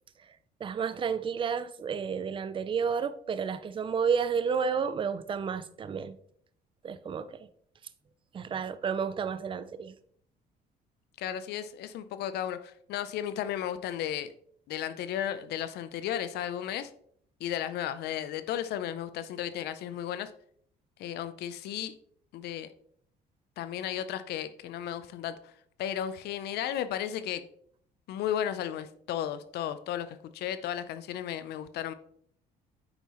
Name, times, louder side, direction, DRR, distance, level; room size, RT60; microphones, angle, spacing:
voice 1, 0.6-6.2 6.8-7.5 8.3-9.9, right 6 dB, 30° right, 0.5 m, -31 dB
voice 2, 11.2-14.3 14.7-16.9 17.4-20.3 21.0-21.9 22.3-22.7 23.6-25.5 25.8-27.4 28.1-31.9, left 10 dB, 75° left, 0.6 m, -34 dB
8.8 x 5.5 x 3.1 m
cardioid pair, 110°, 17 cm